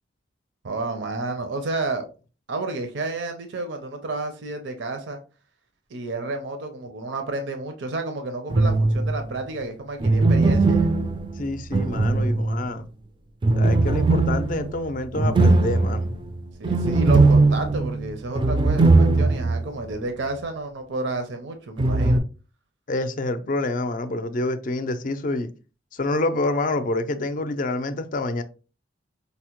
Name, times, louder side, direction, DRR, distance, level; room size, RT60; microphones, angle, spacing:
voice 1, 0.6-2.0 2.5-5.2 5.9-10.9 16.6-22.2, right 2 dB, 75° right, 0.6 m, -31 dB
sound 1, 8.5-9.2 10.0-12.8 13.4-19.6 19.9-20.0 21.8-22.2, right 3 dB, 25° right, 0.3 m, -19 dB
voice 2, 11.4-12.9 13.5-16.1 22.9-25.5 25.9-28.4, left 2 dB, 45° left, 0.4 m, -27 dB
5.2 x 2.1 x 2.9 m
head